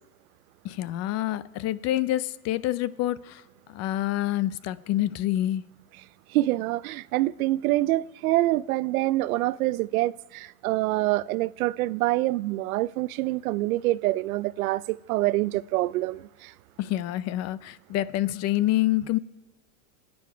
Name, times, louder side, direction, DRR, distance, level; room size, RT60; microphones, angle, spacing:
voice 1, 0.6-3.4 3.7-5.6 16.8-19.2, left 14 dB, 40° left, 0.5 m, -27 dB
voice 2, 6.3-16.5, right 17 dB, 80° right, 0.5 m, -26 dB
26.5 x 9.6 x 4.5 m
supercardioid pair, 120°, 43 cm